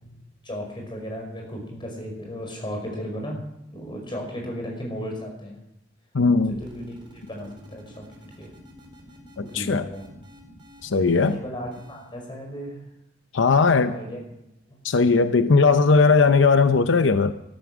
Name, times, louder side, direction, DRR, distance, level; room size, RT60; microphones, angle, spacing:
voice 1, 0.0-3.4 3.7-5.6 6.5-7.0 7.3-8.1 8.4-8.5 9.4-10.0 11.2-12.8 13.4-14.2, equal, 25° left, 1 dB, 5.4 m, -35 dB
voice 2, 6.1-6.6 9.4-9.9 10.8-11.4 13.3-13.9 14.8-17.3, left 4 dB, 85° left, 10 dB, 0.7 m, -18 dB
sound 1, 6.4-12.1, equal, 25° right, 4.1 m, -48 dB
13.5 x 13.0 x 6.1 m, 0.85 s
head